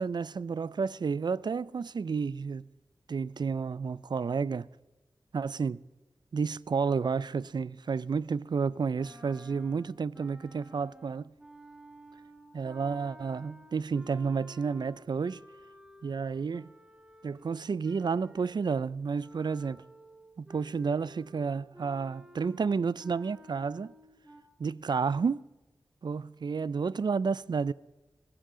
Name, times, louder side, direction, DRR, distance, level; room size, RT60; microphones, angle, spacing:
voice 1, 0.0-2.7 3.1-4.7 5.3-5.8 6.3-11.3 12.5-15.4 16.0-16.7 17.2-19.8 20.4-23.9 24.6-25.4 26.0-27.7, right 5 dB, 60° right, 0.4 m, -31 dB
sound 1, 8.9-18.8 19.2-24.4, equal, 10° right, 1.7 m, -54 dB
21.5 x 14.5 x 3.8 m
wide cardioid pair, 75°, 8 cm